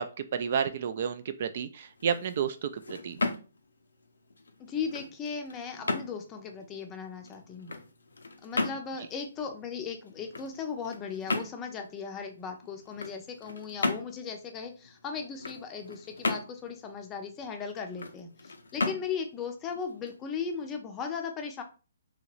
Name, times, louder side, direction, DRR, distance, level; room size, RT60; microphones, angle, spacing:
voice 1, 0.0-3.2, right 7 dB, 50° right, 10 dB, 0.3 m, -31 dB
sound 1, 1.9-20.7, left 3 dB, 85° left, 0.5 m, -37 dB
voice 2, 4.6-7.7 8.4-21.6, left 6 dB, 20° left, 5 dB, 0.5 m, -37 dB
2.9 x 2.8 x 2.4 m, 0.34 s
hypercardioid pair, 145°, 0 cm